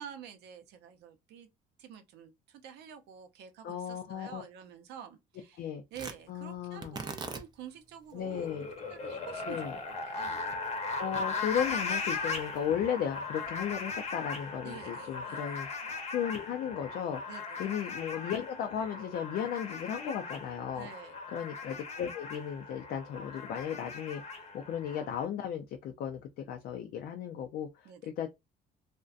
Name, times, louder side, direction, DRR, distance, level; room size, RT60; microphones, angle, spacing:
voice 1, 0.0-1.5 1.8-8.6 8.9-10.5 14.6-15.6 17.3-17.6 20.7-21.2 27.8-28.1, right 8 dB, 80° right, 0.6 m, -49 dB
voice 2, 3.6-4.4 5.6-5.8 6.3-7.0 8.1-8.7 9.5-9.7 10.9-17.2 17.6-20.9 21.3-28.3, left 8 dB, 65° left, 0.4 m, -35 dB
Tearing, 5.9-14.3, right 4 dB, 25° right, 0.4 m, -48 dB
sound 1, 8.2-25.2, left 4 dB, 40° left, 0.8 m, -38 dB
2.5 x 2.1 x 2.3 m
cardioid pair, 110°, 17 cm